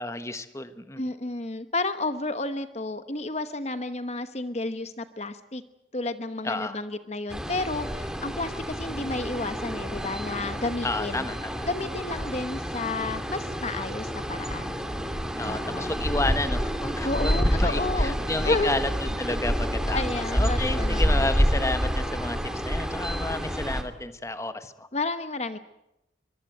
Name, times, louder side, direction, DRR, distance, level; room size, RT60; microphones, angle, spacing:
voice 1, 0.0-1.0 6.4-6.8 10.8-11.6 15.4-22.4 22.6-24.9, left 2 dB, 15° left, 10 dB, 1.3 m, -31 dB
voice 2, 1.0-5.6 5.9-11.3 11.7-14.8 15.4-15.9 17.0-18.2 18.4-18.8 19.9-21.3 24.9-25.6, left 2 dB, 35° left, 10 dB, 1.1 m, -31 dB
sound 1, 7.3-23.8, equal, 5° right, 2.4 m, -28 dB
24.0 x 23.0 x 7.9 m, 0.87 s
head